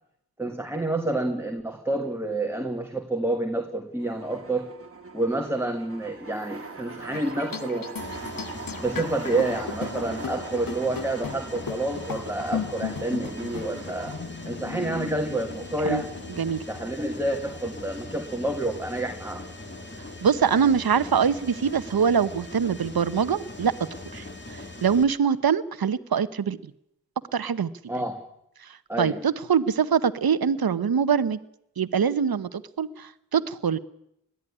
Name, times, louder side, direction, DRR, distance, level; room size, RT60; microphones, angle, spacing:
voice 1, 0.4-4.7 5.1-7.9 8.8-14.2 14.4-16.1 16.7-19.4 27.9-28.2 28.9-29.2, right 2 dB, 5° right, 3 dB, 2.2 m, -28 dB
sound 1, 4.0-14.2, right 4 dB, 40° right, 2.1 m, -41 dB
sound 2, 7.1-16.6, left 7 dB, 70° left, 1.1 m, -37 dB
Mechanisms, 8.0-25.0, left 2 dB, 30° left, 3.2 m, -41 dB
voice 2, 20.2-23.7 24.1-26.6 27.3-27.7 28.6-31.4 31.8-33.8, right 7 dB, 85° right, 14 dB, 0.9 m, -24 dB
21.0 x 13.5 x 9.9 m, 0.78 s
wide cardioid pair, 70°, 36 cm